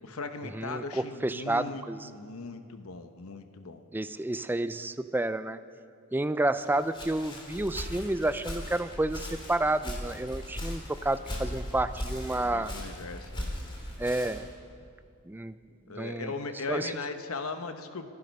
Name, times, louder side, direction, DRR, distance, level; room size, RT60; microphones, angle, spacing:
voice 1, 0.0-3.8 12.4-13.5 15.9-18.1, left 3 dB, 70° left, 8 dB, 1.0 m, -38 dB
voice 2, 0.5-2.1 3.9-5.6 6.1-12.7 14.0-14.5 15.3-15.6 16.0-16.3 16.7-17.0, right 2 dB, 10° right, 13 dB, 0.4 m, -30 dB
Walk footsteps, 6.6-14.5, left 1 dB, 20° left, 2.6 m, -38 dB
25.0 x 11.0 x 5.4 m, 2.4 s
head